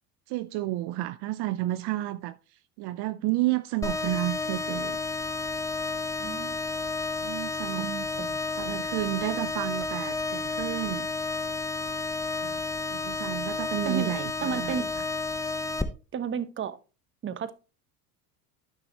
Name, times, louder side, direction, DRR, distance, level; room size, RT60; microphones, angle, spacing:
voice 1, 0.3-5.0 7.2-7.9 8.6-11.1 12.4-12.6 12.9-15.0, right 17 dB, 55° right, 0.6 m, -31 dB
sound 1, 3.8-15.8, left 3 dB, 5° left, 0.9 m, -31 dB
voice 2, 6.2-6.5 7.8-8.9 13.8-14.1 14.4-14.9 16.1-16.8 17.2-17.5, right 7 dB, 25° right, 0.9 m, -33 dB
12.5 x 6.1 x 3.0 m
hypercardioid pair, 90°, 47 cm